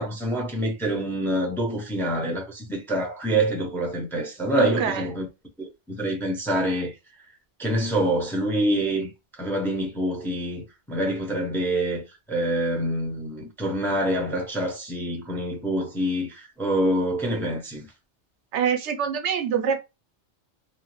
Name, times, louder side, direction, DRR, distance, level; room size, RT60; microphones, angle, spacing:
voice 1, 0.0-5.3 5.6-6.9 7.6-9.1 9.4-12.0 12.3-17.8, right 1 dB, 5° left, 0.5 m, -26 dB
voice 2, 4.6-5.1 18.5-19.8, right 8 dB, 80° right, 0.9 m, -25 dB
2.6 x 2.1 x 3.0 m
omnidirectional pair, 1.2 m